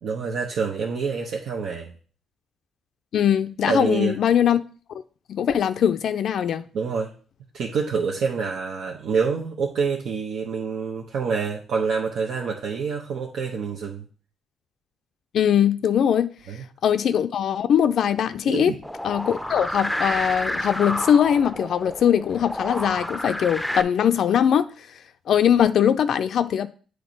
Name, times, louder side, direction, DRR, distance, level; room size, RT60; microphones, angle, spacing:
voice 1, 0.0-1.9 3.7-4.1 6.7-7.1 7.5-14.0 16.5-16.6 18.4-18.8, right 5 dB, 70° right, 1.0 m, -27 dB
voice 2, 3.1-4.6 5.3-6.7 15.3-16.3 16.8-18.7 19.0-24.9 25.3-26.7, left 9 dB, 65° left, 0.4 m, -21 dB
sound 1, 18.8-23.8, left 1 dB, 5° left, 0.6 m, -30 dB
7.9 x 3.3 x 5.2 m
cardioid pair, 90°, 0 cm